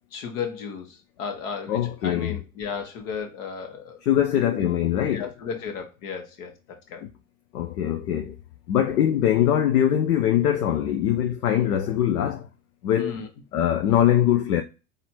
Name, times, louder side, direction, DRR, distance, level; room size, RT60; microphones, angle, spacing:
voice 1, 0.1-4.0 4.3-4.4 5.1-7.0 13.0-13.3, left 6 dB, 65° left, 1.5 m, -34 dB
voice 2, 1.7-2.3 4.0-5.3 7.5-8.3 8.7-12.5 12.8-13.1 13.5-14.6, left 10 dB, 80° left, 0.7 m, -22 dB
4.1 x 2.7 x 4.3 m
hypercardioid pair, 80°, 45 cm